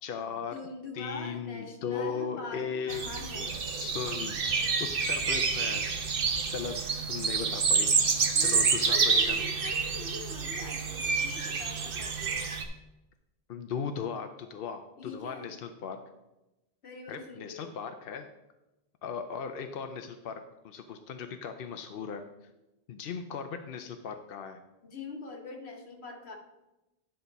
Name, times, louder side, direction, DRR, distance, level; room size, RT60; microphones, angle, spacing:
voice 1, 0.0-0.5 0.9-3.0 3.7-4.4 4.8-5.8 6.5-6.8 7.1-7.9 8.4-9.4 13.5-16.0 17.1-18.3 19.0-22.3 22.9-24.6, left 6 dB, 65° left, 7 dB, 0.8 m, -37 dB
voice 2, 0.5-3.6 8.3-12.3 15.0-15.5 16.8-17.7 24.8-26.4, left 3 dB, 80° left, 2 dB, 1.6 m, -43 dB
sound 1, 2.9-12.6, right 5 dB, 60° right, 1.0 m, -28 dB
10.0 x 5.7 x 4.0 m, 0.98 s
omnidirectional pair, 1.1 m